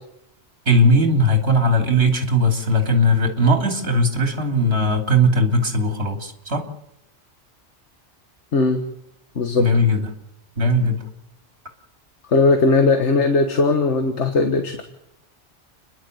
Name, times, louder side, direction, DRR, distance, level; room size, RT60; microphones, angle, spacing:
voice 1, 0.7-6.7 9.6-10.1 10.6-11.0, equal, 60° right, 4 dB, 3.1 m, -18 dB
voice 2, 12.3-14.8, left 3 dB, 70° left, 6 dB, 1.8 m, -18 dB
30.0 x 11.5 x 7.9 m, 0.84 s
omnidirectional pair, 1.2 m